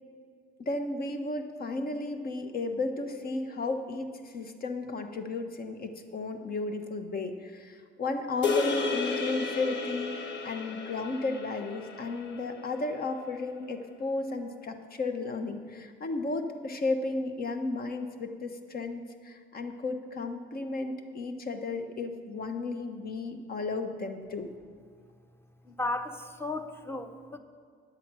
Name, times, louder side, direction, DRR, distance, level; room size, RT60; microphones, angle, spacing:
voice 1, 0.6-24.5, left 3 dB, 50° left, 7 dB, 1.1 m, -34 dB
sound 1, 8.4-12.9, left 4 dB, 65° left, 1.1 m, -33 dB
voice 2, 25.7-27.4, left 2 dB, 10° left, 8 dB, 0.8 m, -35 dB
10.0 x 7.9 x 6.1 m, 2.1 s
cardioid pair, 90°, 20 cm